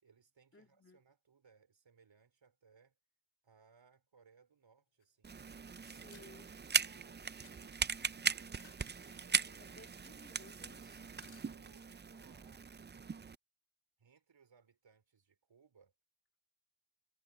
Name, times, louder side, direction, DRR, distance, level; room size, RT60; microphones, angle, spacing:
voice 1, 0.0-3.0 3.4-5.4 5.9-8.8 9.2-9.8 11.4-13.3 14.0-15.9, right 6 dB, 70° right, 4.8 m, -67 dB
voice 2, 0.5-1.0 5.8-6.5 9.6-11.0, left 2 dB, 25° left, 2.3 m, -59 dB
sound 1, 5.0-5.1 6.0-6.3 6.8-7.6 8.1-9.3 9.8-10.1 10.4-10.8 11.0-11.6, left 7 dB, 75° left, 3.0 m, -64 dB
sound 2, 5.2-13.3, right 5 dB, 25° right, 0.3 m, -39 dB
wide cardioid pair, 130°, 47 cm